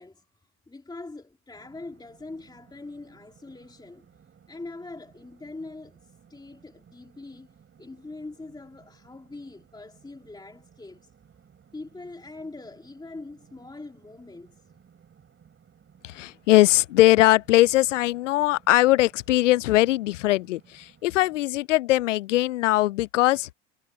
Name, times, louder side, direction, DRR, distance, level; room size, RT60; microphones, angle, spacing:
voice 1, 0.0-4.1 4.5-11.1 11.7-14.6, left 2 dB, 10° left, 3.1 m, -43 dB
sound 1, 1.5-21.5, right 7 dB, 35° right, 5.8 m, -58 dB
voice 2, 16.0-23.5, left 16 dB, 85° left, 0.5 m, -21 dB
hypercardioid pair, 75°, 36 cm